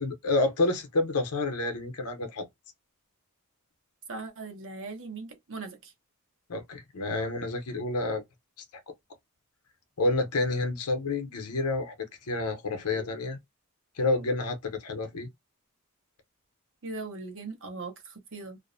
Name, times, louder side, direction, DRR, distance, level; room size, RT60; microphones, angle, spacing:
voice 1, 0.0-2.5 6.5-8.2 10.0-11.9 12.3-13.4 14.0-15.3, left 2 dB, 90° left, 0.7 m, -29 dB
voice 2, 4.1-5.9 16.8-18.6, right 3 dB, 60° right, 0.9 m, -39 dB
2.5 x 2.0 x 2.5 m
head